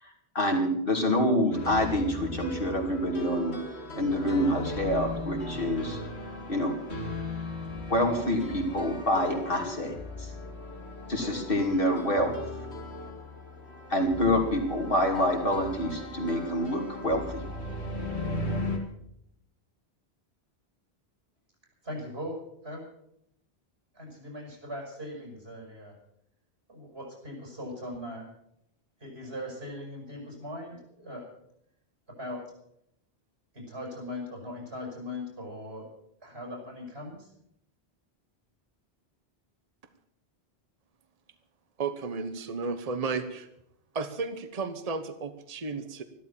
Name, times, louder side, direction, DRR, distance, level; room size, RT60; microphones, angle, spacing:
voice 1, 0.0-3.5 4.0-6.0 6.5-6.7 7.9-10.3 11.1-12.3 13.9-17.4, left 1 dB, 60° left, 1 dB, 3.1 m, -27 dB
sound 1, 1.5-18.8, left 2 dB, 85° left, 2.8 m, -37 dB
voice 2, 21.8-22.9 23.9-25.9 26.7-28.2 29.0-31.3 32.2-32.4 33.5-35.9 36.2-37.3, left 1 dB, 75° right, 0 dB, 6.7 m, -39 dB
voice 3, 41.8-43.5 43.9-46.0, right 4 dB, 35° right, 10 dB, 1.1 m, -33 dB
14.0 x 12.5 x 7.4 m, 0.75 s
omnidirectional pair, 1.1 m